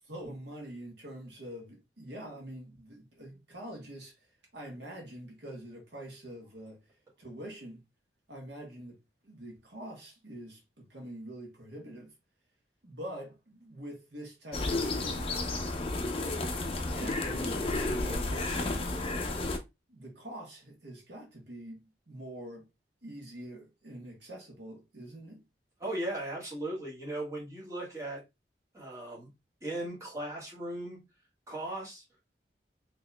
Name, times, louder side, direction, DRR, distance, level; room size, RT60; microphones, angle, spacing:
voice 1, 0.1-4.1 4.5-6.8 7.2-7.8 8.3-9.0 9.2-12.1 12.8-15.3 16.9-18.9 19.9-22.7 23.0-25.4, right 1 dB, 75° right, 1.3 m, -45 dB
sound 1, 14.5-19.6, left 2 dB, 30° left, 0.5 m, -32 dB
voice 2, 25.8-28.2 28.7-29.3 29.6-31.0 31.5-32.0, right 1 dB, 15° right, 1.5 m, -37 dB
4.0 x 3.0 x 2.3 m
head